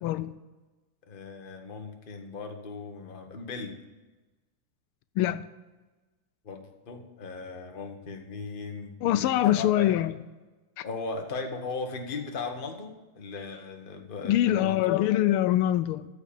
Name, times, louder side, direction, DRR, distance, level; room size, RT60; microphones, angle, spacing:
voice 1, 0.0-0.3 5.2-5.4 9.0-10.1 10.8-10.9 14.2-16.1, left 13 dB, 85° left, 13 dB, 1.5 m, -24 dB
voice 2, 1.1-3.8 6.4-10.0 10.8-15.1, left 4 dB, 30° left, 4 dB, 1.2 m, -37 dB
13.5 x 5.2 x 8.6 m, 1.2 s
omnidirectional pair, 2.4 m